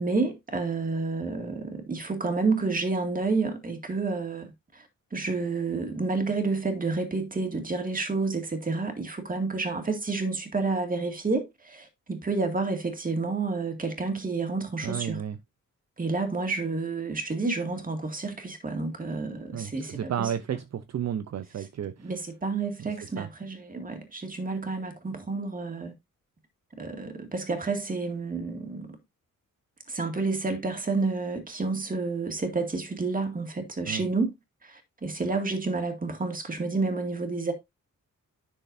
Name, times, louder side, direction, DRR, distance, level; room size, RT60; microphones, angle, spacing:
voice 1, 0.0-4.9 5.1-15.2 16.0-20.3 22.0-25.9 26.8-29.0 29.9-34.3 34.6-37.5, right 3 dB, 25° right, 2.1 m, -30 dB
voice 2, 14.8-15.4 19.5-22.1 22.8-23.3 33.9-34.0, right 9 dB, 55° right, 0.6 m, -33 dB
10.0 x 6.3 x 2.6 m
wide cardioid pair, 140°, 32 cm